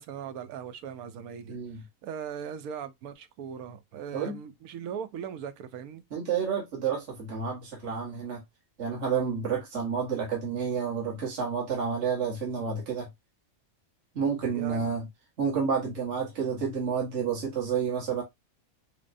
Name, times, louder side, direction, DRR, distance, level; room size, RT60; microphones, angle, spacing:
voice 1, 0.0-1.6 2.0-6.0 14.5-14.9, right 8 dB, 85° right, 1.1 m, -39 dB
voice 2, 1.5-1.8 4.1-4.4 6.1-8.4 8.8-13.1 14.1-15.1 15.4-18.2, right 6 dB, 55° right, 1.6 m, -30 dB
6.1 x 2.2 x 2.5 m
omnidirectional pair, 1.5 m